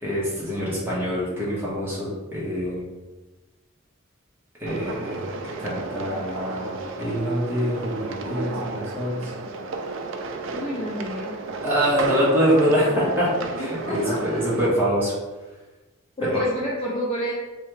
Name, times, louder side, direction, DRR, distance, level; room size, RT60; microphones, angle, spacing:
voice 1, 0.0-2.8 4.6-9.3 11.6-13.3 13.6-15.1 16.3-16.4, equal, 10° right, -8 dB, 1.2 m, -25 dB
sound 1, 4.7-14.7, right 3 dB, 65° right, 0.4 m, -32 dB
voice 2, 10.5-11.4 13.6-14.2 16.2-17.3, equal, 25° left, -5 dB, 0.6 m, -29 dB
3.5 x 3.3 x 3.2 m, 1.2 s
head